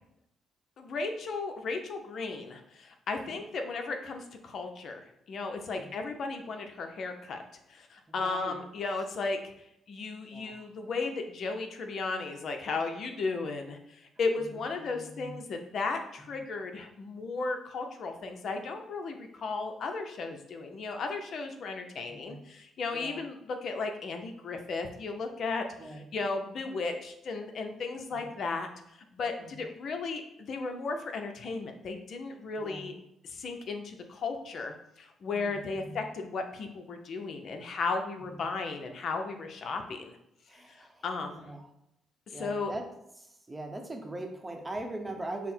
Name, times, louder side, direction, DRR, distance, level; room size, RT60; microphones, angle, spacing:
voice 1, 0.8-7.4 7.7-9.4 9.9-32.9 33.2-40.2 40.7-41.5 42.3-42.7, left 4 dB, 60° left, 5 dB, 0.7 m, -35 dB
voice 2, 8.1-8.6 10.3-10.6 14.4-15.4 22.1-22.4 22.9-23.2 25.8-26.1 28.1-28.3 29.4-29.6 32.6-32.8 35.3-36.0 38.3-38.4 40.5-41.1 41.3-41.7 42.3-42.8 43.2-45.5, right 2 dB, 15° right, 3 dB, 0.8 m, -42 dB
5.8 x 2.1 x 4.4 m, 0.79 s
cardioid pair, 90°, 0 cm